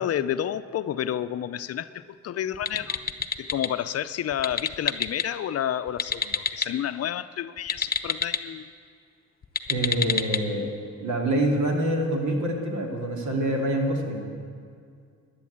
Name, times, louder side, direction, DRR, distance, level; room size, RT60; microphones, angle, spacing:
voice 1, 0.0-3.1 3.4-8.7, left 10 dB, 55° left, 12 dB, 0.5 m, -30 dB
sound 1, 2.5-3.7 4.3-5.3 5.9-6.7 7.6-8.4 9.4-10.4, left 6 dB, 30° left, 0.8 m, -28 dB
voice 2, 9.7-10.7 11.0-14.3, right 1 dB, 75° right, 0 dB, 2.7 m, -26 dB
12.0 x 10.5 x 8.7 m, 2.2 s
cardioid pair, 90°, 30 cm